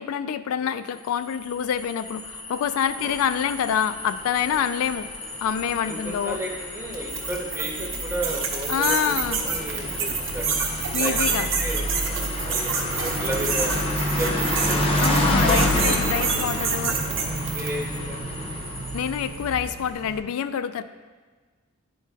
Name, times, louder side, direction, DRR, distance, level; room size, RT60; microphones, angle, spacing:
voice 1, 0.0-5.1 5.4-6.4 8.7-9.4 10.9-11.5 15.0-17.0 18.9-20.8, left 8 dB, 80° left, 13 dB, 0.3 m, -26 dB
sound 1, 1.1-19.6, left 1 dB, 25° left, 0.6 m, -29 dB
sound 2, 3.0-20.2, right 2 dB, 45° right, 0.3 m, -41 dB
voice 2, 5.8-10.6 10.9-11.9 12.4-13.8 14.2-14.9 15.5-15.9 16.3-16.5 17.0-18.2, right 1 dB, 10° right, -1 dB, 0.7 m, -33 dB
sound 3, 6.9-17.9, right 6 dB, 60° right, 0.8 m, -28 dB
10.0 x 4.6 x 2.3 m, 1.4 s
head